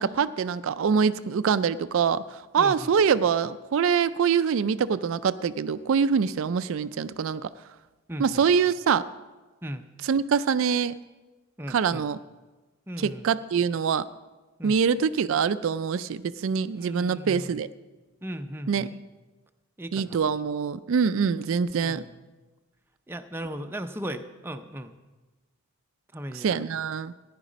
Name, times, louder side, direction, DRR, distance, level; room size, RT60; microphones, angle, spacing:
voice 1, 0.0-7.5 8.2-9.1 10.0-11.0 11.7-12.2 13.0-14.1 14.6-17.7 18.7-18.9 19.9-22.0 26.3-27.1, right 6 dB, 60° right, 14 dB, 0.3 m, -24 dB
voice 2, 2.6-2.9 8.1-8.5 9.6-9.8 11.6-12.0 12.9-13.3 14.6-14.8 16.7-17.6 18.2-18.9 19.8-20.2 21.8-22.2 23.1-25.0 26.1-26.7, equal, 10° right, 7 dB, 0.5 m, -37 dB
15.0 x 10.5 x 5.1 m, 1.2 s
head